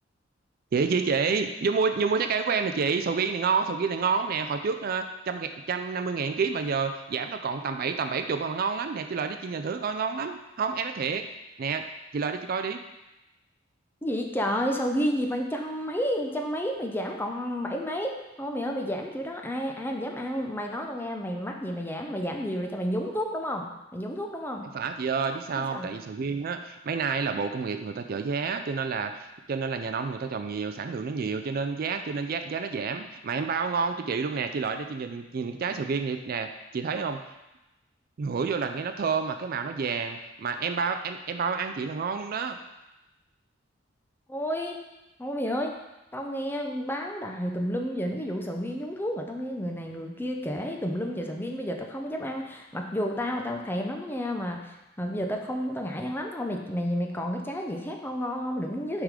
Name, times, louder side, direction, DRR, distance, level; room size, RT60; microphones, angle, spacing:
voice 1, 0.7-11.3 11.6-11.8 12.1-12.8 24.7-37.2 38.2-42.6, right 5 dB, 50° right, 7 dB, 0.4 m, -29 dB
voice 2, 14.0-24.7 25.6-25.9 44.3-44.8 45.2-45.7 46.1-59.0, equal, 10° left, 2 dB, 0.6 m, -31 dB
6.3 x 3.7 x 4.9 m, 0.97 s
head